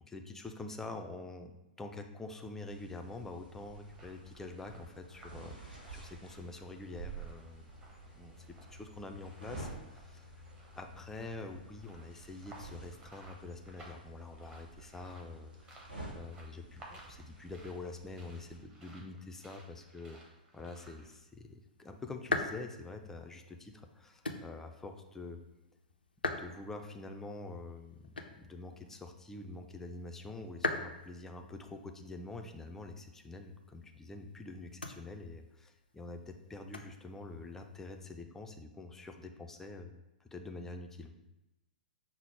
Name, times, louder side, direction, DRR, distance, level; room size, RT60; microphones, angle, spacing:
voice 1, 0.0-7.7 8.2-8.4 8.7-10.3 10.8-15.9 16.1-20.2 20.5-25.4 26.4-41.2, left 2 dB, 10° left, 4 dB, 0.4 m, -46 dB
sound 1, 2.7-18.6, right 2 dB, 85° right, 1.5 m, -51 dB
sound 2, 3.8-21.2, right 2 dB, 20° right, 0.9 m, -59 dB
sound 3, 21.0-38.1, left 3 dB, 85° left, 0.4 m, -44 dB
5.6 x 2.0 x 4.5 m, 0.95 s
figure-of-eight pair, 110°, 5 cm